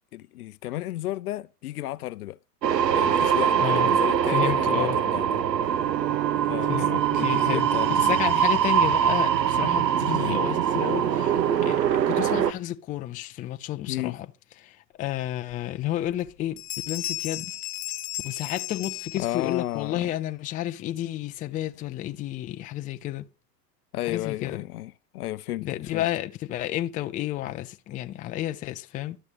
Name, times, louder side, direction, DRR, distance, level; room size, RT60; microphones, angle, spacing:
voice 1, 0.1-2.4 2.9-5.4 6.5-8.4 10.1-10.4 13.9-14.2 19.1-20.1 23.9-26.0, left 15 dB, 65° left, 0.6 m, -33 dB
sound 1, 2.6-12.5, right 9 dB, 80° right, 0.9 m, -23 dB
voice 2, 4.3-5.0 6.7-7.7 7.9-14.3 14.6-17.6 18.2-23.2 24.0-24.6 25.6-29.2, left 13 dB, 15° left, 0.5 m, -31 dB
Bowed string instrument, 5.6-8.7, right 18 dB, 40° right, 0.5 m, -30 dB
Bell, 16.1-16.3 16.6-19.7, left 17 dB, 45° left, 1.1 m, -35 dB
12.5 x 6.7 x 5.0 m
hypercardioid pair, 100°, 49 cm